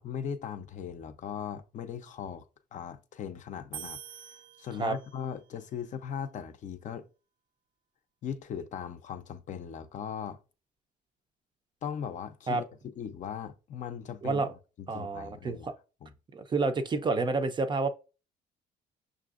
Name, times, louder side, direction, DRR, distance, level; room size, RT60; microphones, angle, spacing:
voice 1, 0.0-2.4 2.7-7.1 8.2-10.4 11.8-12.6 13.0-14.4 14.8-15.7 16.0-16.1, left 8 dB, 50° left, 0.5 m, -39 dB
sound 1, 3.7-5.3, right 10 dB, 75° right, 0.6 m, -45 dB
voice 2, 14.9-15.7 16.3-17.9, right 3 dB, 25° right, 0.4 m, -29 dB
5.9 x 2.6 x 2.4 m
cardioid pair, 110°, 17 cm